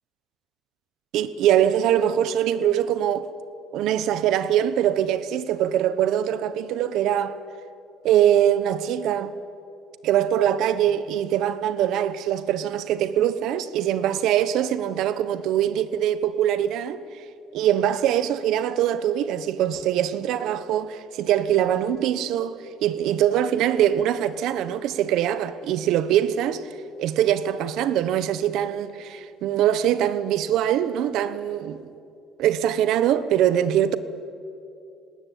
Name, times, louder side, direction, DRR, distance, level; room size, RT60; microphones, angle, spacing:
voice 1, 1.1-3.3 3.7-7.4 8.0-9.3 10.0-17.0 17.5-22.5 22.8-26.7 27.0-31.8 32.4-34.0, right 10 dB, 70° right, 1.1 m, -23 dB
19.5 x 18.5 x 9.4 m
cardioid pair, 140°, 0 cm